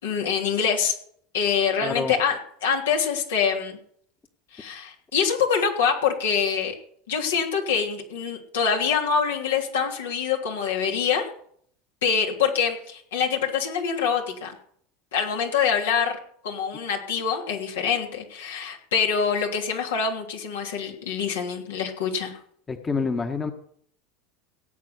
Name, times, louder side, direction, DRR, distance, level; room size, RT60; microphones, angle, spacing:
voice 1, 0.0-0.9 1.3-3.8 4.5-6.7 7.1-11.3 12.0-14.5 15.1-16.2 16.4-22.4, left 6 dB, 80° left, 1 dB, 3.1 m, -25 dB
voice 2, 1.8-2.1 22.7-23.5, left 4 dB, 25° left, 6 dB, 1.5 m, -27 dB
17.5 x 8.2 x 6.9 m, 0.63 s
hypercardioid pair, 85°, 0 cm